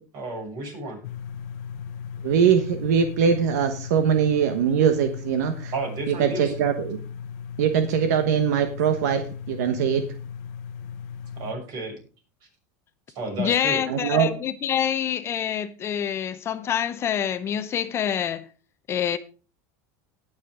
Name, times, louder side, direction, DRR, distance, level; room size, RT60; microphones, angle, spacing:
voice 1, 0.1-1.0 5.7-6.5 11.4-12.0 13.1-13.8, right 2 dB, 50° right, 6.6 m, -32 dB
sound 1, 1.0-11.5, left 7 dB, 70° left, 1.0 m, -37 dB
voice 2, 2.2-5.7 6.1-7.0 7.6-10.0 13.9-14.3, right 7 dB, 80° right, 1.2 m, -22 dB
voice 3, 13.4-18.5 18.9-19.2, left 9 dB, 30° left, 0.6 m, -26 dB
18.0 x 6.4 x 3.7 m
supercardioid pair, 140°, 9 cm